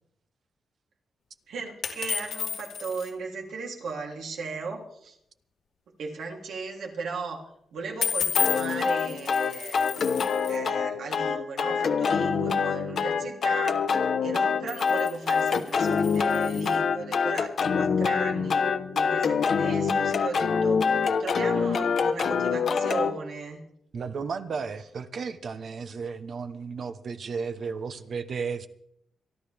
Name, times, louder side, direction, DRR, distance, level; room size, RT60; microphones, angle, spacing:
voice 1, 1.5-5.2 6.0-9.9 10.5-13.9 14.2-18.7 18.9-23.6, right 4 dB, 80° right, 0 dB, 3.1 m, -36 dB
sound 1, 1.8-3.1 8.0-10.6 14.4-16.8, left 7 dB, 85° left, 2.5 m, -33 dB
sound 2, 8.3-23.1, left 6 dB, 60° left, 1.0 m, -25 dB
voice 2, 23.9-28.7, right 5 dB, 55° right, 10 dB, 0.9 m, -34 dB
26.5 x 11.5 x 3.5 m, 0.75 s
cardioid pair, 120°, 0 cm